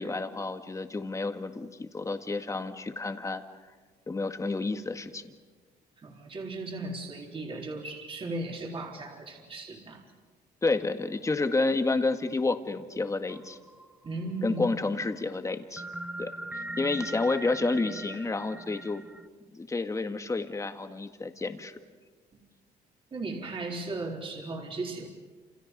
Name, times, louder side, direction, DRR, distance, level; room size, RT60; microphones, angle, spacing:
voice 1, 0.0-3.4 4.1-5.3 10.6-13.6 14.4-15.8 16.2-19.0 19.5-21.7, left 3 dB, 20° left, 6 dB, 1.8 m, -30 dB
voice 2, 6.0-10.0 14.0-14.7 23.1-25.1, right 2 dB, 30° right, -1 dB, 4.1 m, -36 dB
sound 1, 13.3-14.6 15.8-19.3, right 1 dB, 5° right, 0.7 m, -41 dB
29.0 x 28.0 x 5.4 m, 1.4 s
cardioid pair, 110°, 17 cm